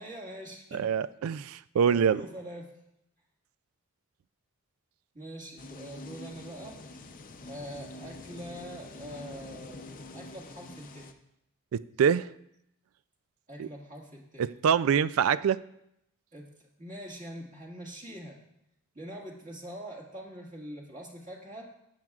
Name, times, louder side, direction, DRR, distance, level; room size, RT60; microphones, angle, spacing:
voice 1, 0.0-0.9 1.8-2.8 5.1-6.8 7.4-9.9 10.1-11.1 13.5-14.5 16.3-18.4 18.9-21.7, equal, 40° right, -3 dB, 1.9 m, -44 dB
voice 2, 0.7-2.2 11.7-12.3 13.6-13.7 14.4-15.6, right 7 dB, 75° right, 17 dB, 0.3 m, -25 dB
sound 1, 5.6-11.1, left 2 dB, 40° left, 0.6 m, -46 dB
15.0 x 8.8 x 2.4 m, 0.78 s
head